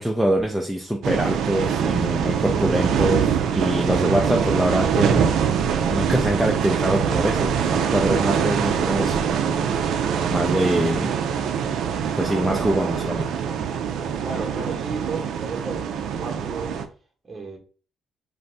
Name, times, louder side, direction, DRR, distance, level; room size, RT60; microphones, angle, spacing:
voice 1, 0.0-5.3 5.9-9.2 9.7-9.8 10.3-11.1 12.2-13.3, equal, ahead, 0.5 m, -24 dB
sound 1, 1.0-16.8, right 7 dB, 80° right, 0.4 m, -23 dB
voice 2, 14.2-16.7 17.3-17.6, right 4 dB, 30° right, 0.9 m, -33 dB
2.6 x 2.5 x 3.3 m
cardioid pair, 90°, 0 cm